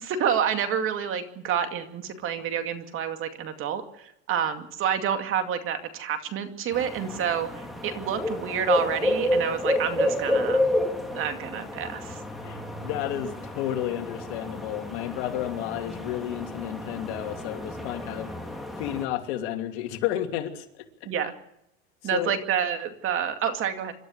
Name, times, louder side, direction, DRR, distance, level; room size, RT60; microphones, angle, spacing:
voice 1, 0.0-10.6 11.1-12.2 21.0-21.3 22.0-23.9, right 8 dB, 40° right, 7 dB, 2.3 m, -28 dB
sound 1, 6.7-19.1, left 1 dB, ahead, 3.1 m, -30 dB
voice 2, 12.4-18.3 18.8-20.6 22.1-22.3, left 11 dB, 75° left, 5 dB, 2.8 m, -31 dB
26.0 x 13.0 x 8.0 m, 0.79 s
supercardioid pair, 145°, 33 cm